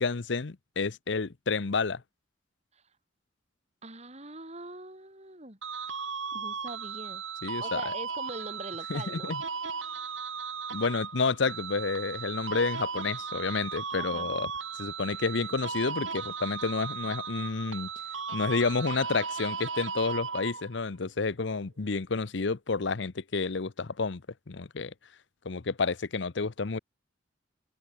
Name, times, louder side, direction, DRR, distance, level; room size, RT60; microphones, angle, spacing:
voice 1, 0.0-2.0 7.4-7.9 8.9-9.4 10.7-14.5 14.8-17.9 18.3-24.2 24.5-24.9 25.4-26.8, left 4 dB, 65° left, 0.7 m, -30 dB
voice 2, 3.8-5.6 6.3-7.2 7.6-9.3 14.0-14.3, right 2 dB, 35° right, 7.9 m, -42 dB
sound 1, 5.6-20.8, right 5 dB, 80° right, 3.4 m, -36 dB
head